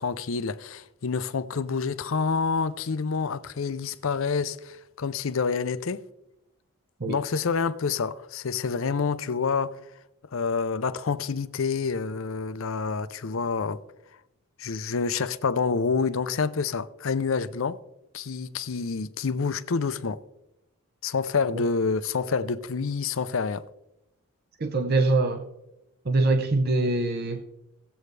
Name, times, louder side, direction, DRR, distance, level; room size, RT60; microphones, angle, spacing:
voice 1, 0.0-6.0 7.1-9.8 10.3-13.8 14.6-17.8 18.1-20.2 21.0-23.6, left 5 dB, 70° left, 0.6 m, -28 dB
voice 2, 24.6-25.5 26.1-27.4, right 2 dB, 45° right, 0.7 m, -23 dB
17.5 x 7.9 x 3.3 m
head